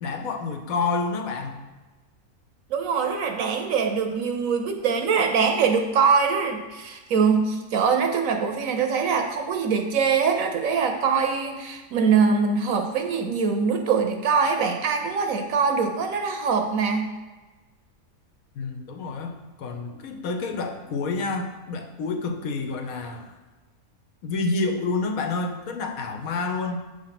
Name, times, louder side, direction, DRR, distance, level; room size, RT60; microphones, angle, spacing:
voice 1, 0.0-1.6 18.6-23.3 24.2-26.8, left 3 dB, 65° left, 5 dB, 1.2 m, -29 dB
voice 2, 2.7-17.1, right 5 dB, 65° right, 5 dB, 1.0 m, -23 dB
7.8 x 3.4 x 5.8 m, 1.2 s
omnidirectional pair, 1.6 m